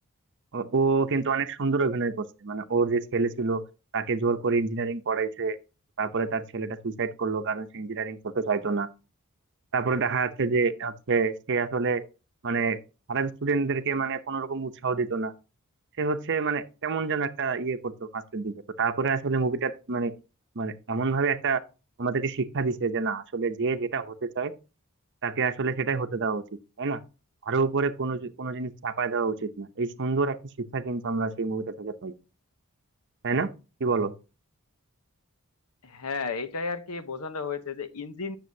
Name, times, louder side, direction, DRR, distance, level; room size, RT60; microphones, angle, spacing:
voice 1, 0.5-3.6 3.9-5.6 6.0-8.9 9.7-12.0 12.4-12.8 13.1-15.3 16.0-20.1 20.6-21.6 22.0-24.5 25.2-26.4 26.8-27.0 27.5-32.1 33.2-33.5 33.8-34.1, right 4 dB, 55° right, 0.7 m, -27 dB
voice 2, 35.8-38.4, left 4 dB, 85° left, 0.9 m, -33 dB
9.4 x 6.8 x 2.7 m
head